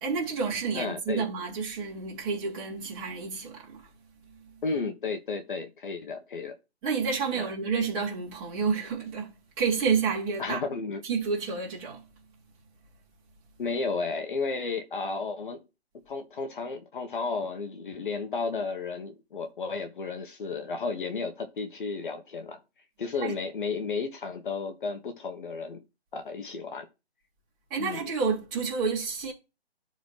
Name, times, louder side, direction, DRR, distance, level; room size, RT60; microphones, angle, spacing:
voice 1, 0.0-3.8 6.8-10.6 11.0-12.0 23.2-23.3 27.7-29.3, right 5 dB, 20° right, 3.1 m, -29 dB
voice 2, 0.7-1.3 4.6-6.6 7.4-7.5 10.4-11.0 13.6-15.6 16.1-22.6 23.0-25.8 26.1-26.9 27.8-28.0, left 4 dB, 50° left, 1.2 m, -33 dB
11.5 x 4.0 x 3.2 m
figure-of-eight pair, 155°, 32 cm